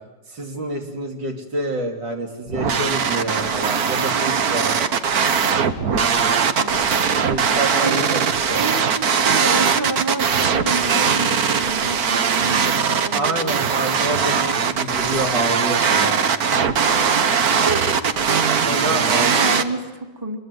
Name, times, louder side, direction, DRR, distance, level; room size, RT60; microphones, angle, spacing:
voice 1, 0.3-4.8 7.3-8.6 13.1-16.2 18.6-19.3, right 2 dB, 90° right, 2 dB, 3.7 m, -27 dB
sound 1, 2.5-19.6, right 6 dB, 60° right, 1.6 m, -20 dB
voice 2, 6.6-6.9 7.8-8.0 8.6-13.7 17.6-17.9 18.6-20.4, right 3 dB, 10° right, 5 dB, 2.3 m, -29 dB
25.5 x 22.0 x 9.4 m, 1.2 s
omnidirectional pair, 1.9 m